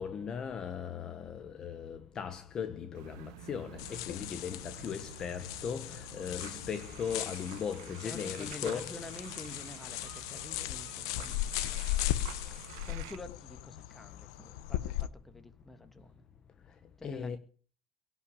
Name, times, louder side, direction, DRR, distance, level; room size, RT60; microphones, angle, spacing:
voice 1, 0.0-3.7 4.1-5.9 6.1-8.9 17.0-17.4, left 7 dB, 25° left, 1.0 m, -38 dB
sound 1, 2.9-13.2, right 14 dB, 80° right, 0.9 m, -50 dB
sound 2, 3.8-15.1, left 14 dB, 80° left, 0.8 m, -38 dB
voice 2, 8.0-16.2 17.0-17.4, left 2 dB, 5° left, 1.4 m, -49 dB
17.5 x 5.8 x 9.8 m
cardioid pair, 160°, 3 cm